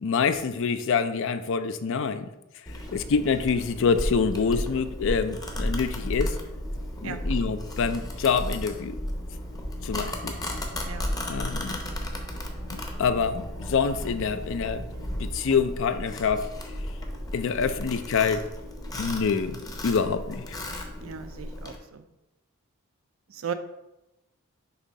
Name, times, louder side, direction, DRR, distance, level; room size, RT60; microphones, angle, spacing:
voice 1, 0.0-2.3 2.9-6.4 7.0-9.0 9.8-10.4 11.3-11.8 13.0-14.9 15.2-16.5 17.3-18.4 19.0-20.6, left 5 dB, 60° left, 11 dB, 0.4 m, -26 dB
Domestic sounds home sounds, 2.7-21.8, equal, 15° left, 0.7 m, -34 dB
voice 2, 21.0-22.0 23.3-23.5, right 7 dB, 65° right, 10 dB, 0.5 m, -36 dB
6.8 x 2.7 x 5.2 m, 0.93 s
head